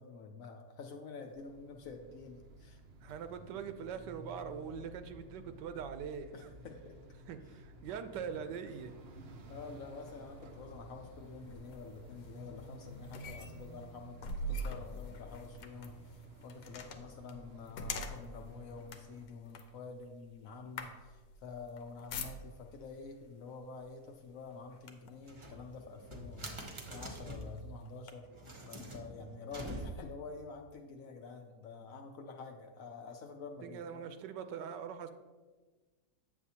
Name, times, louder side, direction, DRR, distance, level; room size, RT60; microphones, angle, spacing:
voice 1, 0.0-2.8 6.3-7.0 9.5-28.3 28.7-34.1, left 4 dB, 70° left, 4 dB, 0.8 m, -48 dB
sound 1, 1.3-19.3, right 1 dB, 70° right, 0.6 m, -53 dB
voice 2, 3.0-6.5 7.3-8.9 33.6-35.1, right 7 dB, 85° right, 9 dB, 1.2 m, -42 dB
sound 2, 10.0-22.8 23.7-23.9 24.3-25.3 25.9-26.0 26.5-28.1, left 1 dB, 90° left, 1.3 m, -45 dB
sound 3, 25.2-27.6 28.3-30.2, right 1 dB, 25° right, 0.6 m, -45 dB
8.4 x 7.1 x 2.8 m, 1.3 s
omnidirectional pair, 1.8 m